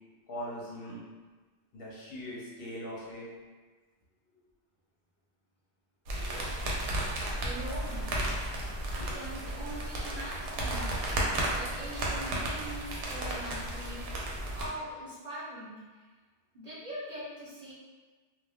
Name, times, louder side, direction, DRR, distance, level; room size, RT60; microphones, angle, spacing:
voice 1, 0.3-1.0 1.7-3.3 9.0-9.1, equal, 60° left, -6 dB, 0.7 m, -40 dB
voice 2, 6.1-6.5 7.1-8.1 8.7-10.9 11.4-16.1 16.5-17.7, right 1 dB, 45° right, -10 dB, 0.9 m, -43 dB
sound 1, 6.1-14.7, right 1 dB, 90° right, 0.9 m, -33 dB
2.2 x 2.2 x 3.3 m, 1.3 s
omnidirectional pair, 1.2 m